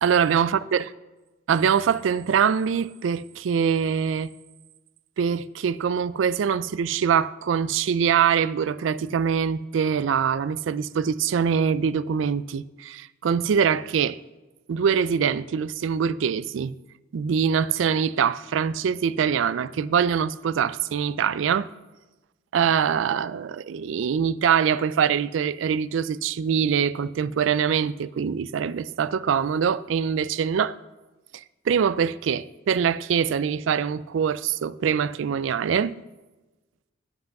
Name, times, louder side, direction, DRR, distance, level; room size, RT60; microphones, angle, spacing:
voice 1, 0.0-0.8 1.5-4.3 5.2-14.2 14.7-16.7 17.1-21.7 22.5-30.8 31.7-35.9, right 7 dB, 75° right, 0.3 m, -23 dB
8.1 x 7.7 x 5.8 m
head